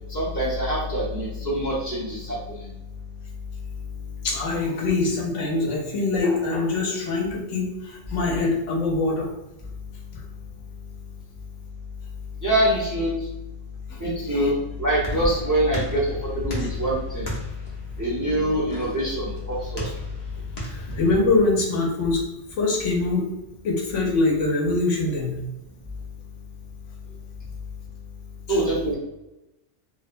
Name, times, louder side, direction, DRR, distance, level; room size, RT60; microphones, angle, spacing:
voice 1, 0.1-2.6 12.4-13.1 14.0-17.3 18.0-19.8 28.5-29.0, equal, 20° right, -7 dB, 0.6 m, -24 dB
voice 2, 4.2-9.3 10.1-10.2 13.9-14.0 14.3-14.5 20.6-22.2 22.6-23.2 23.6-25.4, left 3 dB, 85° left, -1 dB, 1.0 m, -23 dB
sound 1, 14.6-21.7, right 1 dB, 40° left, 0.7 m, -36 dB
2.7 x 2.1 x 2.5 m, 0.95 s
omnidirectional pair, 1.2 m